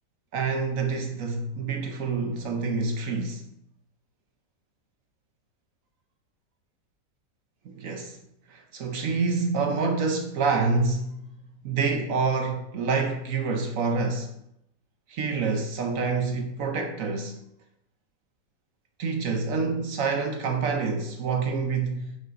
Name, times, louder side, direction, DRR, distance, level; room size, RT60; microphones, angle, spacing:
voice 1, 0.3-3.5 7.7-8.2 8.5-11.3 11.6-14.4 15.1-17.4 19.0-22.2, right 4 dB, 65° right, 1.0 m, -27 dB
9.0 x 5.5 x 2.6 m
omnidirectional pair, 1.7 m